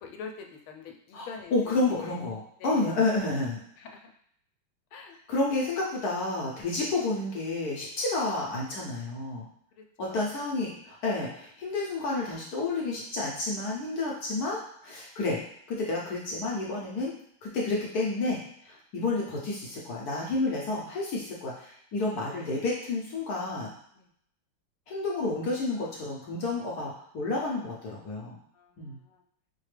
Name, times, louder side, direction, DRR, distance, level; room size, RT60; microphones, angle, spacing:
voice 1, 0.0-1.5 2.0-2.2 2.6-2.9 3.8-4.1 4.9-5.1 9.8-10.3 24.0-24.1 28.5-29.2, left 6 dB, 85° left, 3 dB, 1.4 m, -44 dB
voice 2, 1.1-3.6 5.3-9.5 10.0-15.4 15.7-17.1 17.4-23.7 24.9-28.3 28.8-29.0, left 2 dB, 65° left, -3 dB, 1.0 m, -30 dB
5.0 x 2.2 x 3.2 m, 0.69 s
omnidirectional pair, 2.2 m